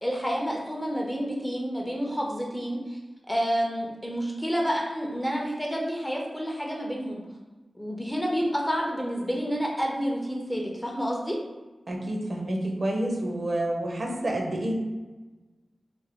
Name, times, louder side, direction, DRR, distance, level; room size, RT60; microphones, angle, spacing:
voice 1, 0.0-3.0 3.3-7.2 7.7-11.4, equal, 10° left, -1 dB, 0.6 m, -29 dB
voice 2, 11.9-14.7, right 1 dB, 45° right, 0 dB, 0.6 m, -29 dB
3.4 x 2.0 x 3.5 m, 1.2 s
wide cardioid pair, 95°, 0 cm